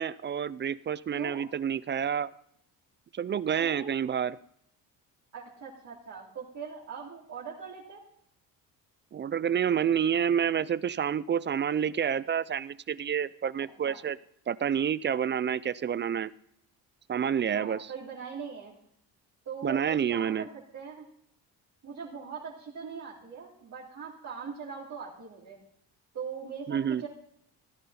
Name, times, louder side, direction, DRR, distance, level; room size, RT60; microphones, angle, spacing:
voice 1, 0.0-2.3 3.1-4.4 9.1-14.2 14.5-16.3 17.1-17.9 19.6-20.5 26.7-27.0, right 8 dB, 30° right, 19 dB, 0.4 m, -29 dB
voice 2, 1.1-1.5 3.5-3.9 5.3-8.0 13.8-14.0 17.5-18.7 19.5-21.1 21.8-25.6 26.1-27.1, right 6 dB, 45° right, -7 dB, 3.4 m, -41 dB
16.5 x 10.5 x 4.3 m, 0.71 s
cardioid pair, 100°, 38 cm